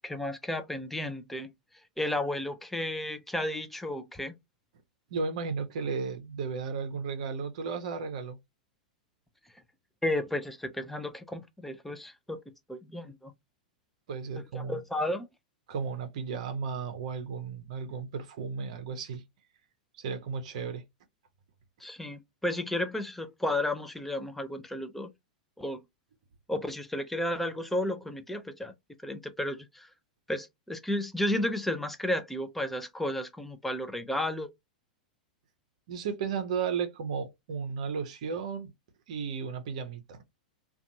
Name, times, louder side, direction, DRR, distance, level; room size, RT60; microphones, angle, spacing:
voice 1, 0.0-1.5 2.0-4.3 10.0-12.4 12.7-13.3 14.5-15.3 21.8-25.1 25.6-25.8 26.5-28.7 29.0-29.9 30.3-34.5, left 1 dB, 5° left, 0.5 m, -33 dB
voice 2, 5.1-8.4 14.1-14.8 15.7-19.2 20.0-20.8 35.9-38.7 39.1-40.2, right 5 dB, 50° right, 0.6 m, -34 dB
2.5 x 2.3 x 2.6 m
figure-of-eight pair, 95°, 4 cm